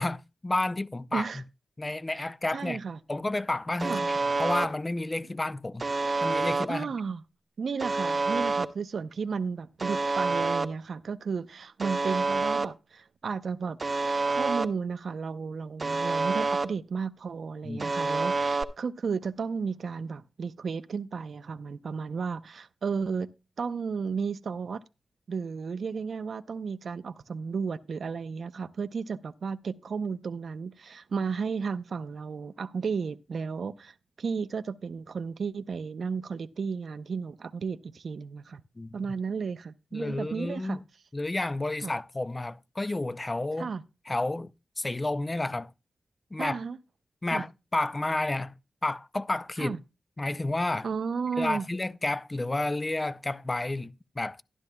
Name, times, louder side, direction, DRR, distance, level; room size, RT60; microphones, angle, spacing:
voice 1, 0.0-1.4 1.8-2.8 3.1-5.9 6.2-6.9 17.6-17.9 38.8-39.0 39.9-40.8 41.1-43.7 44.1-45.7 46.3-46.6 47.2-48.5 48.8-49.8 50.2-50.9 51.4-54.4, left 2 dB, 25° left, 0.5 m, -31 dB
voice 2, 1.1-1.4 2.1-2.3 2.5-3.0 3.8-4.0 6.7-7.2 7.6-13.8 14.3-23.3 23.6-24.8 25.3-38.6 38.9-40.8 41.8-41.9 43.6-43.8 46.4-46.8 47.3-47.5 49.6-49.8 50.8-51.7, right 5 dB, 70° right, 0.6 m, -33 dB
Alarm, 3.8-4.7 5.8-6.7 7.8-8.7 9.8-10.7 11.8-12.7 13.8-14.7 15.8-16.7 17.8-18.6, right 3 dB, 40° right, 0.7 m, -27 dB
12.5 x 12.0 x 2.2 m
wide cardioid pair, 95°, 0 cm